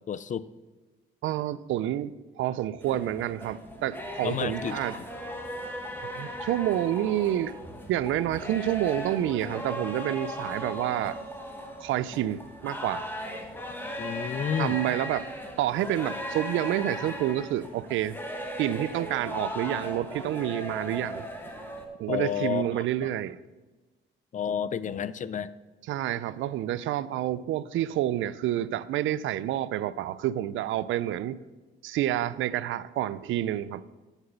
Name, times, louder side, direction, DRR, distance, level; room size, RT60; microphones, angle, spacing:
voice 1, 0.1-0.4 4.2-4.8 14.0-14.8 22.1-23.1 24.3-25.5, left 8 dB, 40° left, 0.4 m, -31 dB
voice 2, 1.2-2.1 2.4-5.0 6.2-7.5 7.9-11.2 11.8-13.1 14.6-15.2 15.6-18.2 18.6-21.2 22.0-23.4 25.9-31.4 31.8-33.8, right 12 dB, 80° right, 0.4 m, -28 dB
sound 1, 2.8-21.9, equal, 10° left, 1.6 m, -37 dB
8.0 x 6.0 x 6.9 m
cardioid pair, 90°, 20 cm